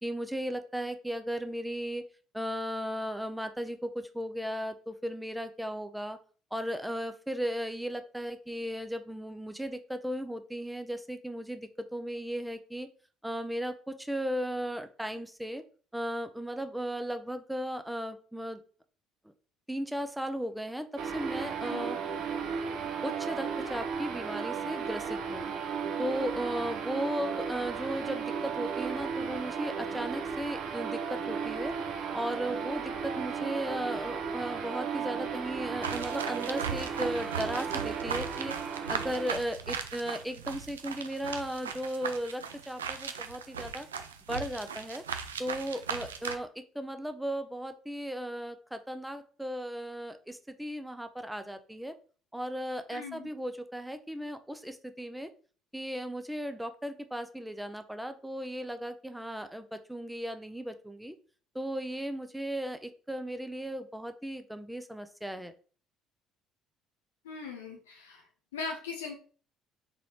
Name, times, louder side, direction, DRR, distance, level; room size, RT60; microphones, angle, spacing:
voice 1, 0.0-2.0 2.3-6.2 6.5-12.9 13.2-15.6 15.9-18.6 19.7-22.0 23.0-25.5 26.0-31.7 32.1-38.6 38.9-43.9 44.3-45.0 45.4-46.5 46.7-52.0 52.3-55.3 55.7-61.1 61.5-65.5, equal, 5° right, 8 dB, 0.4 m, -36 dB
sound 1, 21.0-39.3, right 6 dB, 60° right, 0.7 m, -35 dB
sound 2, 35.8-46.4, right 6 dB, 80° right, 0.3 m, -38 dB
voice 2, 52.9-53.3 67.2-68.2 68.5-69.1, left 4 dB, 75° left, 1 dB, 0.8 m, -39 dB
3.7 x 3.1 x 2.9 m, 0.40 s
figure-of-eight pair, 50°, 0 cm